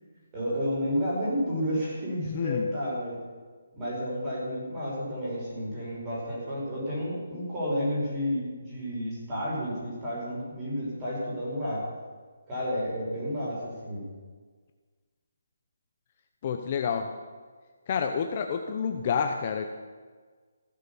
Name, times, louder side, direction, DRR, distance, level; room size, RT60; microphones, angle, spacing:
voice 1, 0.3-3.2 3.7-11.8 12.5-14.1, equal, 15° right, -6 dB, 5.4 m, -31 dB
voice 2, 2.3-2.7 16.4-17.1 17.9-19.7, left 6 dB, 25° left, 5 dB, 0.7 m, -28 dB
15.5 x 11.0 x 7.0 m, 1.5 s
hypercardioid pair, 175°, 0 cm